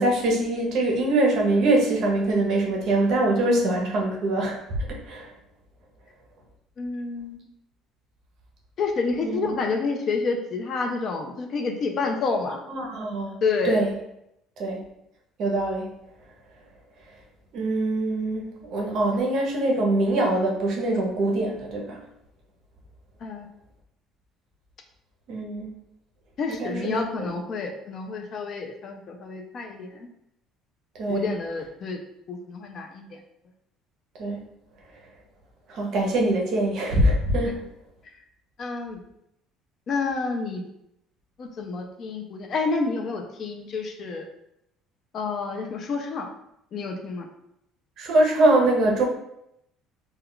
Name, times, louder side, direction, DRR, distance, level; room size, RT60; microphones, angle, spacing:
voice 1, 0.0-4.6 4.9-5.3 9.2-9.5 12.7-13.4 13.6-13.9 14.6-14.8 15.4-15.9 17.5-22.0 25.3-25.7 26.5-27.0 31.0-31.3 34.2-34.4 35.7-37.6 48.0-49.0, right 1 dB, 50° right, 0 dB, 0.6 m, -23 dB
voice 2, 6.8-7.5 8.8-12.6 13.4-13.8 23.2-23.5 26.4-30.1 31.1-32.0 32.3-33.1 38.6-39.0 39.9-40.6 41.4-44.2 45.1-46.3 46.7-47.3, left 4 dB, 35° left, 4 dB, 0.3 m, -29 dB
2.2 x 2.1 x 3.6 m, 0.80 s
cardioid pair, 160°, 0 cm